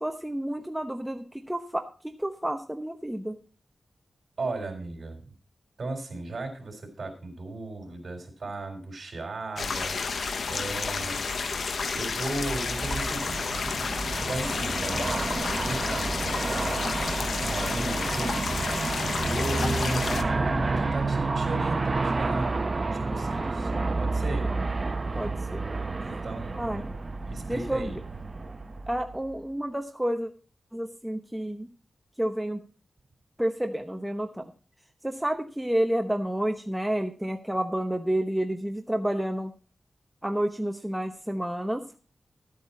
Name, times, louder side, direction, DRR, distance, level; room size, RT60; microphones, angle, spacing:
voice 1, 0.0-3.4 24.5-24.6 25.1-25.6 26.6-26.8 27.5-28.0 28.9-30.3 30.7-31.7 32.2-32.6 33.4-34.4 35.0-39.5 40.2-41.8, right 1 dB, 5° right, 4 dB, 0.9 m, -30 dB
voice 2, 4.4-5.3 5.8-10.2 10.5-11.2 11.9-13.6 14.1-16.8 17.0-23.7 24.0-24.5 26.0-26.9 27.3-28.0, right 2 dB, 60° right, 3 dB, 3.8 m, -36 dB
sound 1, 9.6-20.2, left 4 dB, 80° left, 0.9 m, -31 dB
Aircraft, 12.1-29.4, right 3 dB, 40° right, 0.9 m, -30 dB
13.0 x 8.7 x 4.2 m, 0.37 s
wide cardioid pair, 95°, 0 cm